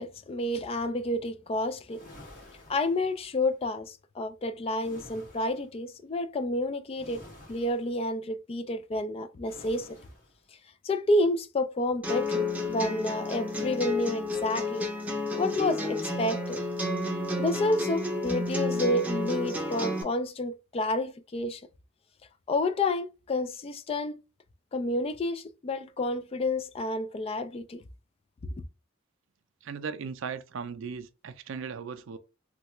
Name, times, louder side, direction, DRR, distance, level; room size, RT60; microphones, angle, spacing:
voice 1, 0.0-2.0 2.7-9.9 10.8-14.9 15.3-16.6 17.4-21.6 22.5-24.2 24.7-27.8, left 1 dB, 30° left, 0.3 m, -30 dB
sound 1, 1.9-3.5 4.8-5.7 6.9-8.0 9.4-10.4, left 1 dB, 45° left, 1.8 m, -50 dB
sound 2, 12.0-20.0, left 2 dB, 10° right, 0.6 m, -31 dB
voice 2, 29.6-32.2, right 6 dB, 70° right, 0.4 m, -37 dB
3.2 x 2.3 x 2.9 m
head